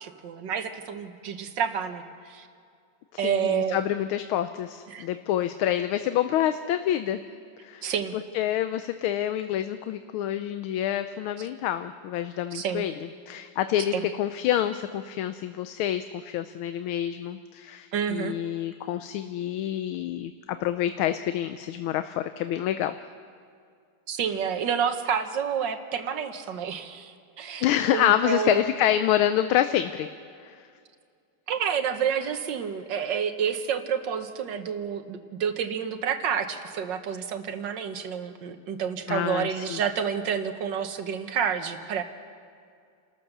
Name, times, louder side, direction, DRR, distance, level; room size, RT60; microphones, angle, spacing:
voice 1, 0.0-2.5 3.2-3.8 4.9-5.1 7.8-8.1 12.5-12.8 13.9-14.1 17.9-18.3 24.1-27.6 27.9-28.6 31.5-42.0, right 7 dB, 65° right, 8 dB, 1.8 m, -29 dB
voice 2, 3.1-7.2 7.6-7.9 8.1-23.0 27.6-30.1 30.4-30.7 39.1-39.8, left 11 dB, 90° left, 10 dB, 1.5 m, -27 dB
29.5 x 13.0 x 6.7 m, 2.3 s
omnidirectional pair, 2.2 m